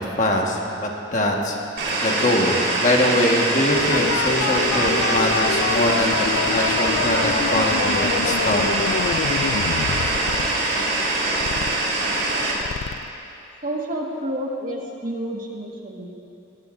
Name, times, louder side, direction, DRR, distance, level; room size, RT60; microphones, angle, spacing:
voice 1, 0.0-1.5 2.0-8.7, left 1 dB, 40° left, 0 dB, 1.5 m, -23 dB
sound 1, 1.8-12.5, right 2 dB, 80° right, 4.0 m, -23 dB
sound 2, 3.7-10.8, equal, ahead, 3.5 m, -42 dB
sound 3, 3.9-13.1, left 7 dB, 85° left, 0.3 m, -27 dB
voice 2, 13.6-16.1, right 1 dB, 45° right, -1 dB, 1.6 m, -29 dB
20.5 x 19.0 x 2.6 m, 2.7 s
head